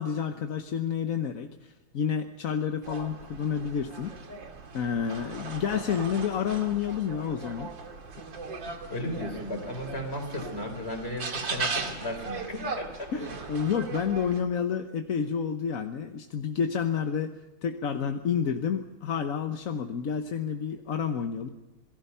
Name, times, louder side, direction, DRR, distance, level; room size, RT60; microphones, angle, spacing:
voice 1, 0.0-4.1 4.7-7.7 13.1-17.3 17.6-21.5, left 7 dB, 50° left, 6 dB, 1.2 m, -29 dB
sound 1, 2.8-14.4, right 4 dB, 65° right, 2.8 m, -38 dB
voice 2, 8.9-13.1, left 1 dB, 30° left, 5 dB, 4.0 m, -35 dB
26.5 x 18.5 x 5.6 m, 1.0 s
omnidirectional pair, 2.2 m